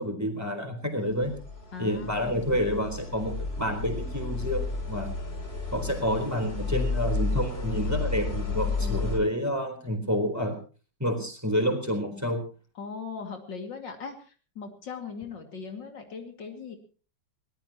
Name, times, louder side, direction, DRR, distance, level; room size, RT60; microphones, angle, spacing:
voice 1, 0.0-1.3 1.8-5.1 5.7-10.6 11.0-12.4, equal, 10° right, 4 dB, 3.9 m, -29 dB
sound 1, 1.1-9.2, left 3 dB, 35° left, 3.1 m, -32 dB
voice 2, 1.7-2.6 8.8-9.1 12.8-16.8, left 5 dB, 70° left, 5 dB, 3.1 m, -39 dB
22.5 x 18.5 x 3.0 m, 0.37 s
omnidirectional pair, 2.0 m